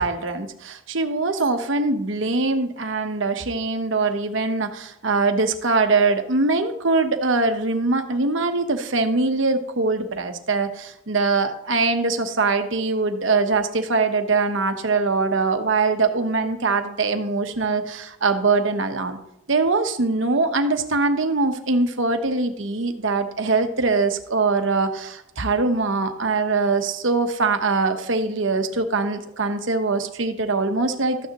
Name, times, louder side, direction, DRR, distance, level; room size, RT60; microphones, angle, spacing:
voice 1, 0.0-19.2 19.5-31.3, right 3 dB, 70° right, 7 dB, 1.0 m, -22 dB
13.5 x 9.2 x 3.0 m, 0.76 s
head